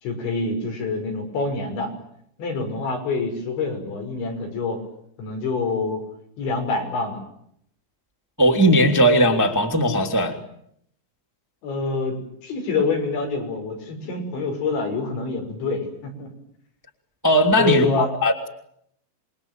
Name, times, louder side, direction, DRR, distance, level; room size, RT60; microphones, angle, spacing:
voice 1, 0.0-1.9 2.4-4.8 5.2-6.0 6.4-7.2 11.6-12.2 12.4-16.3 17.6-18.1, left 3 dB, 90° left, 3 dB, 8.3 m, -26 dB
voice 2, 8.4-10.4 17.2-18.5, equal, 5° right, 3 dB, 1.8 m, -18 dB
27.0 x 23.0 x 9.2 m, 0.71 s
omnidirectional pair, 5.1 m